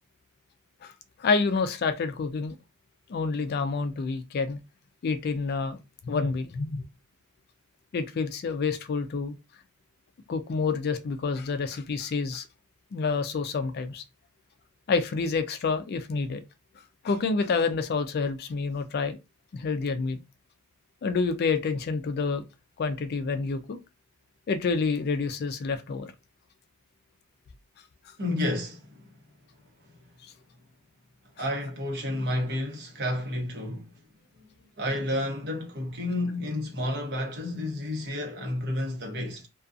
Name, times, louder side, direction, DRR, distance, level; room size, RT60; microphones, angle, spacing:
voice 1, 0.8-2.6 3.1-4.6 5.0-6.8 7.9-9.3 10.3-12.5 12.9-14.0 14.9-16.4 16.8-19.2 19.5-20.2 21.0-22.4 22.8-23.8 24.5-26.1 28.1-28.2, left 4 dB, 45° left, 0.3 m, -28 dB
voice 2, 28.2-29.1 31.4-33.9 34.8-39.5, left 1 dB, 50° right, 0.9 m, -31 dB
2.5 x 2.3 x 2.4 m
head